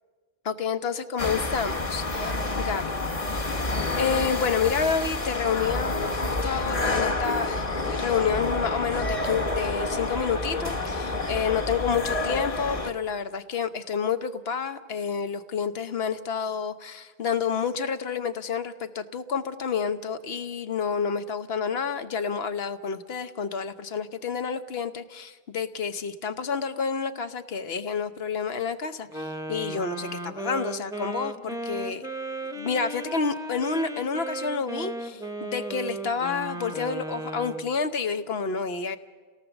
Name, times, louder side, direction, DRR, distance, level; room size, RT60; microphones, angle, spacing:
voice 1, 0.4-2.3 2.6-3.0 3.9-32.1 32.5-39.0, left 6 dB, 75° left, 10 dB, 1.1 m, -29 dB
sound 1, 1.2-12.9, left 2 dB, 35° left, 1.1 m, -28 dB
Wind instrument woodwind instrument, 29.1-37.7, right 2 dB, 5° right, 0.7 m, -35 dB
29.5 x 17.5 x 7.0 m, 1.5 s
omnidirectional pair, 1.1 m